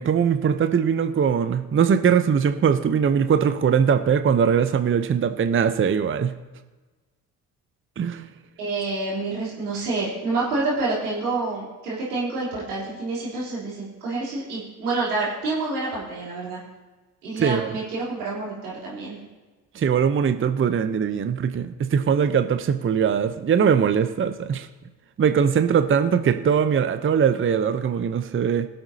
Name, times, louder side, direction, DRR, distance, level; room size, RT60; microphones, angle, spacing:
voice 1, 0.0-6.3 8.0-8.3 17.4-17.8 19.7-24.7 25.2-28.7, right 7 dB, 30° right, 9 dB, 0.7 m, -21 dB
voice 2, 8.6-16.6 17.2-19.2, right 3 dB, 90° right, -6 dB, 3.6 m, -28 dB
21.0 x 7.8 x 2.8 m, 1.3 s
hypercardioid pair, 50°, 44 cm